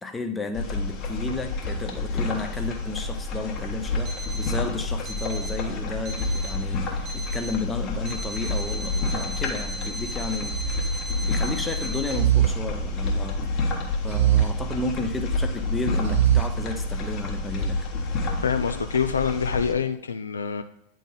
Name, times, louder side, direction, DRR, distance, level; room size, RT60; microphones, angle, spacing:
voice 1, 0.0-10.6 11.2-13.6 14.0-17.8, left 3 dB, 10° left, 6 dB, 0.7 m, -32 dB
sound 1, 0.5-19.7, left 2 dB, 35° left, 1.3 m, -29 dB
Alarm, 4.0-4.6 5.0-5.6 6.0-6.6 7.0-7.6 8.0-12.2, right 1 dB, 25° right, 1.2 m, -37 dB
sound 2, 10.5-11.5 12.1-13.4 14.1-15.4 16.1-17.2, right 12 dB, 55° right, 0.5 m, -24 dB
voice 2, 18.4-20.6, left 7 dB, 70° left, 9 dB, 0.4 m, -26 dB
9.2 x 3.9 x 3.8 m, 0.82 s
figure-of-eight pair, 90°, 0 cm